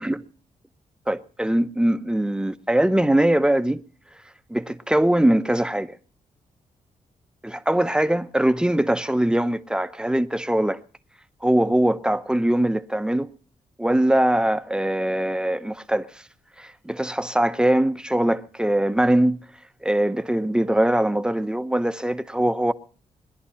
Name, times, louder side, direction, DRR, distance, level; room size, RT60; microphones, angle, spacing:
voice 1, 1.1-3.8 4.5-6.0 7.4-10.8 11.4-13.3 13.8-16.2 16.6-19.4 19.8-22.7, right 1 dB, 5° right, 0.8 m, -22 dB
21.5 x 11.0 x 5.6 m
cardioid pair, 95°, 14 cm